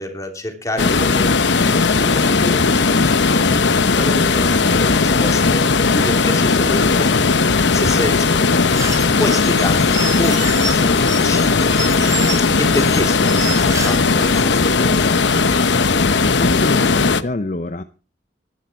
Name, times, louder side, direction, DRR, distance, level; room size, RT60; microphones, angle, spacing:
voice 1, 0.0-1.4 1.9-11.8 12.4-15.2, left 1 dB, 20° left, 4 dB, 3.1 m, -28 dB
sound 1, 0.8-17.2, left 4 dB, 80° left, 0.9 m, -16 dB
sound 2, 8.7-14.5, right 4 dB, 20° right, 3.6 m, -29 dB
voice 2, 16.4-17.8, left 2 dB, 40° left, 11 dB, 0.6 m, -25 dB
18.5 x 11.0 x 4.4 m, 0.37 s
head